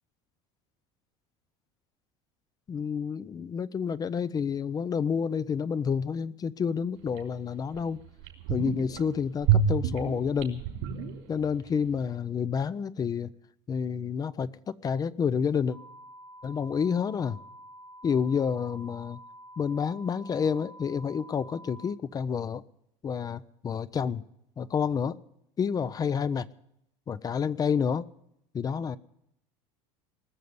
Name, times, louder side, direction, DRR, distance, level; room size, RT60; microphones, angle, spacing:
voice 1, 2.7-8.0 8.5-10.6 11.3-13.3 13.7-15.8 16.4-17.4 18.0-19.2 19.6-22.6 23.0-24.2 24.6-25.2 25.6-26.5 27.1-28.1 28.5-29.0, left 6 dB, 25° left, 16 dB, 0.5 m, -29 dB
sound 1, 7.2-7.3 7.7-7.8 8.2-9.0 9.4-11.7 11.9-12.0, right 7 dB, 80° right, 3.3 m, -27 dB
sound 2, 15.7-21.9, right 1 dB, ahead, 1.1 m, -49 dB
19.5 x 6.6 x 9.5 m, 0.78 s
supercardioid pair, 105°, 14 cm